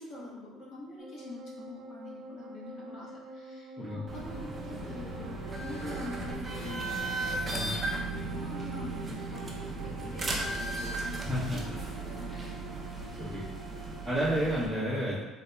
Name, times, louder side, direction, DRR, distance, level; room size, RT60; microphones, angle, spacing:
voice 1, 0.0-6.9 7.9-12.4 13.0-13.4, left 2 dB, 50° left, -5 dB, 1.0 m, -45 dB
sound 1, 1.0-14.4, right 1 dB, 75° right, 0.5 m, -47 dB
sound 2, 4.1-14.7, right 2 dB, 20° right, 0.5 m, -36 dB
voice 2, 11.2-11.6 13.2-13.5 14.0-15.2, equal, ahead, -13 dB, 0.9 m, -31 dB
3.7 x 2.8 x 2.2 m, 1.2 s
cardioid pair, 145°, 0 cm